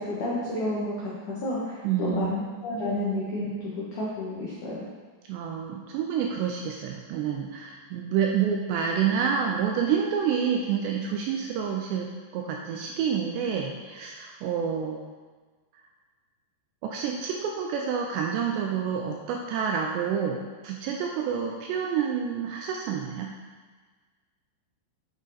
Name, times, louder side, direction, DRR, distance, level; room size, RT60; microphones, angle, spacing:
voice 1, 0.0-4.8, left 1 dB, 80° left, -7 dB, 1.7 m, -31 dB
voice 2, 1.8-2.3 5.3-15.0 16.8-23.3, right 7 dB, 85° right, 1 dB, 2.5 m, -28 dB
8.7 x 5.4 x 4.0 m, 1.4 s
omnidirectional pair, 5.5 m